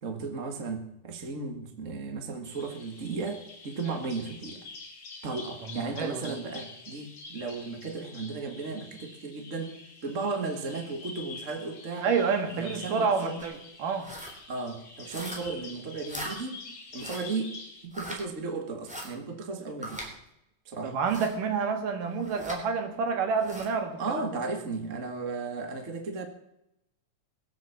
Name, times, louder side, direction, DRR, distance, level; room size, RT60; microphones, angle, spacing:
voice 1, 0.0-4.6 5.2-9.8 10.0-12.1 12.5-13.4 14.5-16.6 16.9-17.6 17.8-20.1 20.6-20.9 24.0-26.3, right 4 dB, 35° right, 5 dB, 1.4 m, -35 dB
Bird vocalization bird call bird song, 2.4-17.9, left 4 dB, 45° left, 4.6 m, -46 dB
voice 2, 5.7-6.3 12.0-14.1 20.8-24.0, right 5 dB, 80° right, 6 dB, 3.4 m, -28 dB
sound 1, 13.4-13.6 14.0-14.4 15.1-15.6 16.1-16.4 17.0-17.3 17.9-18.2 18.8-19.1 19.8-20.1 21.1-21.4 22.2-22.6 23.4-23.7, equal, ahead, 3.3 m, -40 dB
21.5 x 8.1 x 7.2 m, 0.82 s
omnidirectional pair, 3.7 m